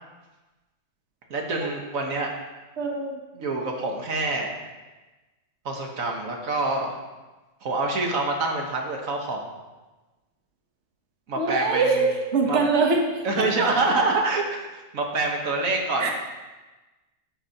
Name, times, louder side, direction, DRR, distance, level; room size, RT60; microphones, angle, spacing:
voice 1, 1.3-2.3 3.3-4.6 5.6-7.0 7.6-9.4 11.3-12.1 12.5-12.6 13.2-16.1, right 3 dB, 85° right, 1 dB, 1.7 m, -26 dB
voice 2, 2.8-3.2 11.3-13.5 16.0-16.1, right 4 dB, 60° right, 1 dB, 1.5 m, -23 dB
12.0 x 10.5 x 2.9 m, 1.2 s
omnidirectional pair, 1.4 m